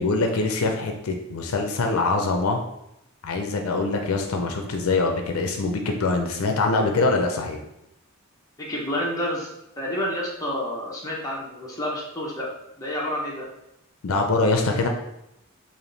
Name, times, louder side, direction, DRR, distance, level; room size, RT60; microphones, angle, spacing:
voice 1, 0.0-2.6 3.2-7.6 14.0-14.9, left 3 dB, 75° left, 3 dB, 0.5 m, -24 dB
voice 2, 8.6-9.5 9.8-12.5 12.8-13.5, left 1 dB, 15° left, -4 dB, 0.8 m, -29 dB
3.4 x 2.6 x 3.9 m, 0.84 s
head